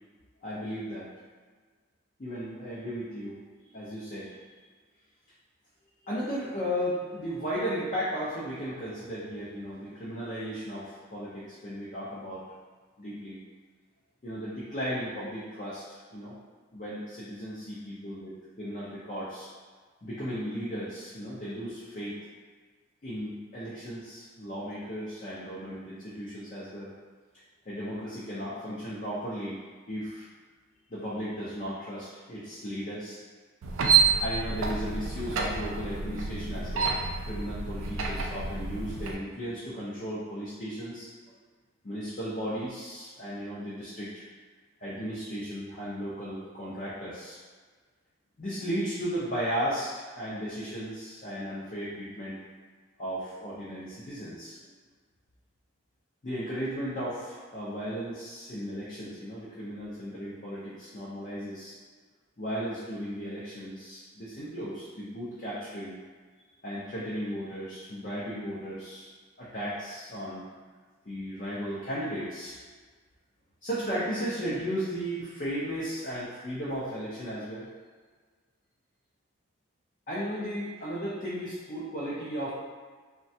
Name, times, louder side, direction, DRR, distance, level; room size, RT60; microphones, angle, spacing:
voice 1, 0.4-1.1 2.2-3.4 3.7-4.4 6.0-12.4 13.0-13.4 14.2-16.3 16.7-19.5 20.0-22.2 23.0-26.9 27.7-29.6 29.9-30.2 30.9-33.2 34.0-36.9 37.2-41.1 41.8-44.2 44.8-47.4 48.4-52.4 53.0-54.6 56.2-61.7 62.4-66.0 66.6-69.1 69.4-70.5 71.1-72.6 73.6-77.7 80.1-82.5, equal, 40° left, -9 dB, 0.5 m, -35 dB
sound 1, 33.6-39.2, right 5 dB, 75° right, 0.4 m, -28 dB
3.2 x 2.2 x 2.7 m, 1.5 s
head